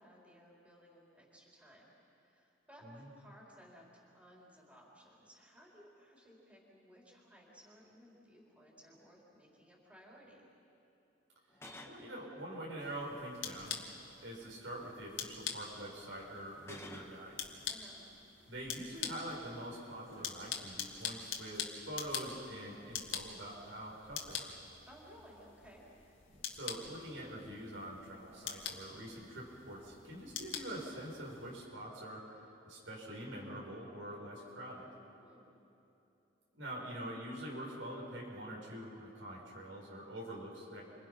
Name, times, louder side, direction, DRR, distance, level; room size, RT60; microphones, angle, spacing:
voice 1, 0.0-10.5 17.6-18.0 24.9-25.8 35.2-35.5, equal, 5° right, -5 dB, 4.4 m, -59 dB
sound 1, 8.5-8.6 8.9-9.1 11.5-12.0 13.3-13.7 16.6-17.2, left 2 dB, 15° left, 1.7 m, -51 dB
voice 2, 11.9-13.8 14.2-17.4 18.5-24.5 26.3-32.2 32.7-34.9 36.5-40.8, right 1 dB, 85° right, -3 dB, 6.6 m, -45 dB
sound 2, 12.8-31.6, left 7 dB, 90° left, 2.2 m, -45 dB
30.0 x 25.5 x 5.9 m, 2.9 s
head